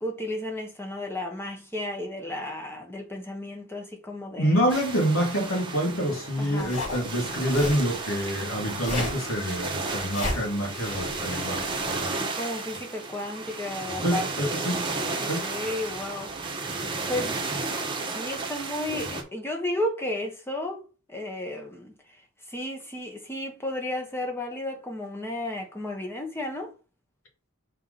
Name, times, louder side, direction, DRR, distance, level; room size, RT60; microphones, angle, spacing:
voice 1, 0.0-4.6 6.4-6.7 12.3-14.8 15.2-16.6 17.1-17.4 18.1-20.8 21.1-22.2 22.5-26.7, left 1 dB, 10° left, 1.3 m, -33 dB
voice 2, 4.4-12.1 14.0-14.8 15.2-15.5, equal, 65° left, 2.3 m, -27 dB
sound 1, 4.7-19.2, right 3 dB, 20° right, 1.2 m, -33 dB
sound 2, 6.6-12.2, left 2 dB, 40° left, 3.9 m, -35 dB
5.9 x 4.4 x 4.0 m
head